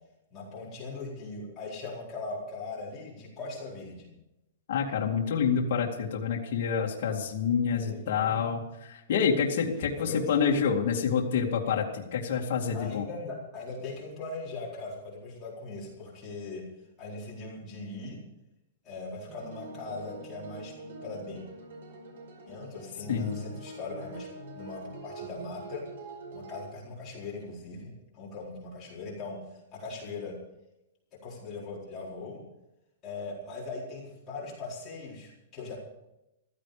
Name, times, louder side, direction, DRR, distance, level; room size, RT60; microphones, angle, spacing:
voice 1, 0.3-4.1 7.7-8.4 10.0-10.3 12.7-16.6 17.0-18.2 18.8-20.7 21.0-21.4 22.5-24.3 24.5-25.8 26.3-29.4 29.7-30.3 31.2-32.4 33.0-35.8, left 3 dB, 15° left, -6 dB, 4.4 m, -40 dB
voice 2, 4.7-13.0 23.1-23.4, left 6 dB, 50° left, -2 dB, 2.3 m, -28 dB
sound 1, 19.3-26.7, right 2 dB, 75° right, 5.2 m, -44 dB
15.0 x 14.0 x 5.1 m, 0.92 s
supercardioid pair, 175°, 0 cm